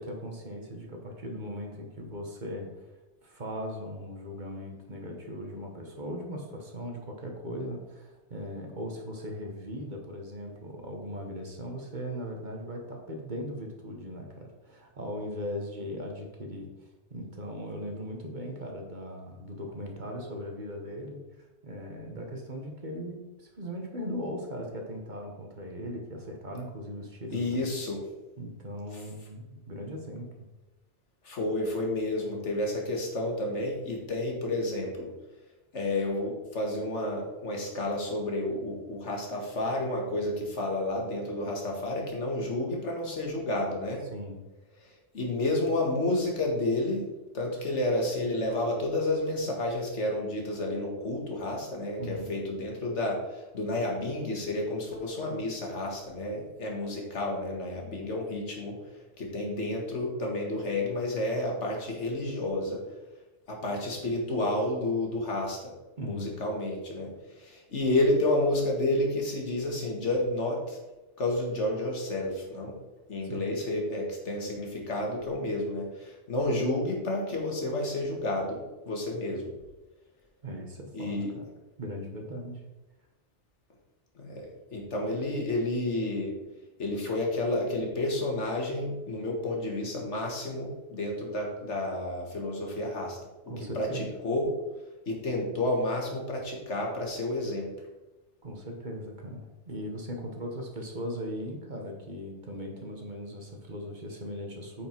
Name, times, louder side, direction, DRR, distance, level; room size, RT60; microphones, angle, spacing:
voice 1, 0.0-2.9 3.2-21.2 21.6-27.6 28.4-30.5 44.0-44.4 52.0-52.3 66.0-66.3 73.2-73.5 80.4-81.4 81.8-82.6 93.5-94.1 98.4-104.9, equal, 45° right, 2 dB, 1.4 m, -38 dB
voice 2, 27.3-28.0 31.2-35.1 35.7-44.1 45.1-47.1 47.3-58.8 59.2-62.8 63.5-65.7 66.0-70.8 71.2-72.7 73.1-79.4 80.9-81.3 84.2-86.3 86.8-93.2 93.8-94.6 95.1-97.7, left 1 dB, 85° left, 0 dB, 2.0 m, -30 dB
8.8 x 4.9 x 4.6 m, 1.1 s
omnidirectional pair, 1.2 m